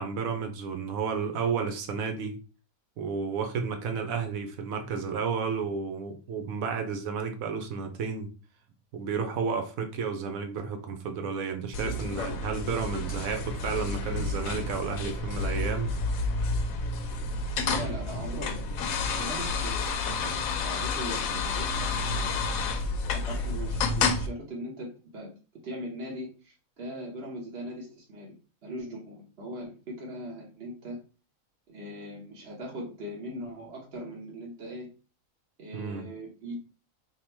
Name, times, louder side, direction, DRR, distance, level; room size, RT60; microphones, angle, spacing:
voice 1, 0.0-2.4 3.0-8.3 8.9-15.9 35.7-36.1, right 5 dB, 80° right, 1.1 m, -32 dB
sound 1, 11.7-24.3, left 3 dB, 80° left, 1.0 m, -30 dB
voice 2, 17.7-18.6 18.9-19.9 20.6-22.4 23.1-25.3 25.6-28.3 28.6-31.0 31.7-34.9 35.6-36.6, equal, 50° right, 1.2 m, -40 dB
3.6 x 2.2 x 4.3 m
omnidirectional pair, 1.4 m